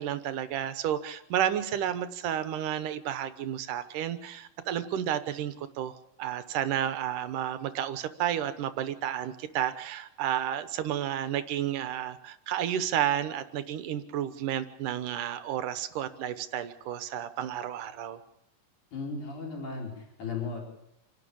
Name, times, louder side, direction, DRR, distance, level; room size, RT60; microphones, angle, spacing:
voice 1, 0.0-5.9 6.2-18.2, right 10 dB, 70° right, 11 dB, 2.6 m, -31 dB
voice 2, 18.9-20.7, left 4 dB, 60° left, -1 dB, 6.1 m, -36 dB
28.0 x 12.0 x 8.7 m, 0.84 s
omnidirectional pair, 4.0 m